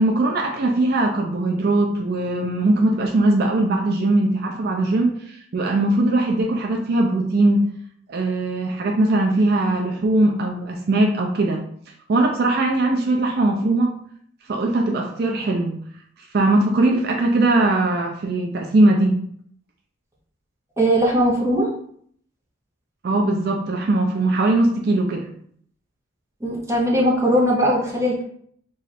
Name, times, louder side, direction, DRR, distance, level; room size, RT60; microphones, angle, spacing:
voice 1, 0.0-7.7 8.1-11.6 12.1-13.9 14.5-15.8 16.3-19.1 23.0-25.3, right 2 dB, 55° right, 1 dB, 0.4 m, -20 dB
voice 2, 20.8-21.7 26.4-28.2, equal, 15° right, -3 dB, 0.8 m, -19 dB
3.0 x 2.5 x 4.1 m, 0.63 s
head